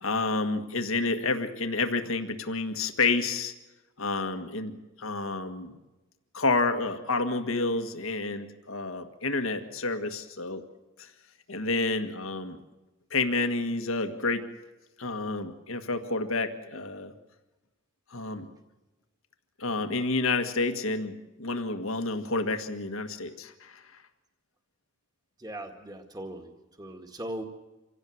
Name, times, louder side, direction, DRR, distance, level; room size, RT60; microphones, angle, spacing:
voice 1, 0.0-3.5 4.0-5.7 6.3-10.6 11.0-11.1 11.5-12.6 13.1-14.5 15.0-17.1 18.1-18.5 19.6-23.8, left 3 dB, 75° left, 7 dB, 1.8 m, -29 dB
voice 2, 25.4-26.5 26.8-27.4, right 1 dB, 20° right, 4 dB, 1.9 m, -38 dB
26.5 x 17.0 x 7.9 m, 1.1 s
head